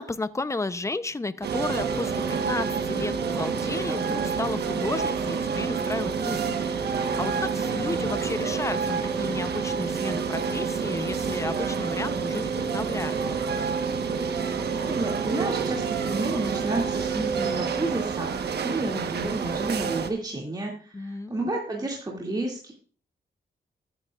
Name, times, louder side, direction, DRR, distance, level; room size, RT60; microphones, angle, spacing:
voice 1, 0.0-6.4 6.8-13.2 20.9-21.5, left 2 dB, 15° left, 14 dB, 0.7 m, -33 dB
sound 1, 1.4-20.1, right 5 dB, 70° right, 1.2 m, -28 dB
voice 2, 14.9-22.7, right 2 dB, 20° right, -2 dB, 2.3 m, -31 dB
12.5 x 9.8 x 2.4 m, 0.41 s
cardioid pair, 80°, 18 cm